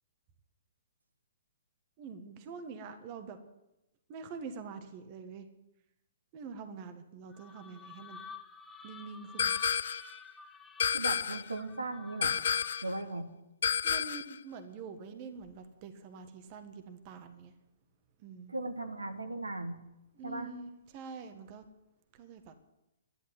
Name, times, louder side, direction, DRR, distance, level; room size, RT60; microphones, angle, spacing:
voice 1, 2.0-3.4 4.1-5.5 6.3-8.2 8.8-9.6 13.8-17.5 18.2-18.5 20.1-21.6 22.1-22.5, right 5 dB, 35° right, 8 dB, 1.5 m, -45 dB
sound 1, 7.3-13.0, left 6 dB, 10° left, 0.9 m, -50 dB
sound 2, 9.4-10.1 10.8-11.5 12.2-12.9 13.6-14.4, left 8 dB, 55° left, 0.5 m, -30 dB
voice 2, 10.9-13.3 18.5-19.8 20.2-20.5, right 2 dB, 80° right, 6 dB, 1.7 m, -38 dB
11.5 x 11.0 x 9.3 m, 0.92 s
figure-of-eight pair, 120°, 0 cm